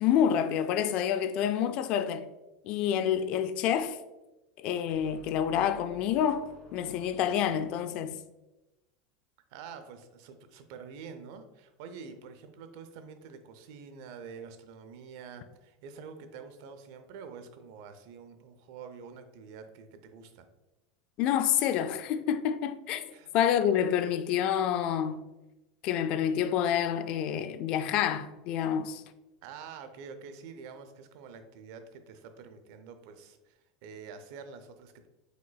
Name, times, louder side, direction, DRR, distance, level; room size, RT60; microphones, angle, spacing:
voice 1, 0.0-2.3 2.6-4.0 4.6-8.2 21.2-23.1 23.3-25.3 25.8-29.0, left 9 dB, 50° left, 0.3 m, -28 dB
sound 1, 4.9-8.2, left 1 dB, 30° left, 1.3 m, -55 dB
voice 2, 9.5-20.5 23.1-23.3 29.4-35.1, right 6 dB, 65° right, 0.5 m, -47 dB
5.0 x 4.0 x 2.2 m
supercardioid pair, 135°, 2 cm